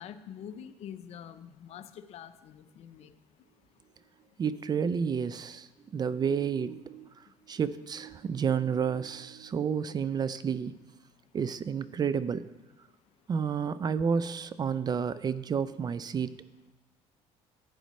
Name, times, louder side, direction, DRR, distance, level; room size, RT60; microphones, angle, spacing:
voice 1, 0.0-3.1, left 9 dB, 55° left, 11 dB, 0.6 m, -45 dB
voice 2, 4.4-5.7 5.9-10.7 11.3-12.4 13.3-16.3, right 6 dB, 30° right, 15 dB, 0.4 m, -30 dB
11.0 x 9.0 x 3.1 m, 1.1 s
supercardioid pair, 90°, 13 cm